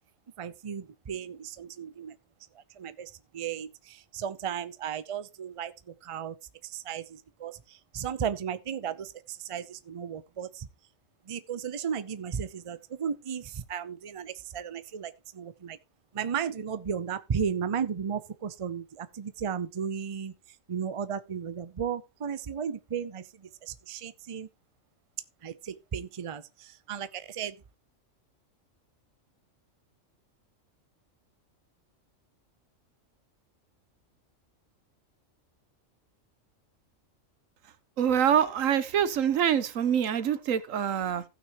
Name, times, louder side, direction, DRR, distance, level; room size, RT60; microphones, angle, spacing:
voice 1, 0.4-2.2 2.8-5.7 6.0-6.4 6.7-7.6 7.9-10.7 11.3-15.8 16.1-20.3 20.7-23.2 23.6-24.5 25.4-27.5, right 7 dB, 35° right, 0.5 m, -35 dB
voice 2, 38.0-41.2, right 9 dB, 85° right, 1.3 m, -25 dB
16.0 x 6.1 x 2.9 m
omnidirectional pair, 1.3 m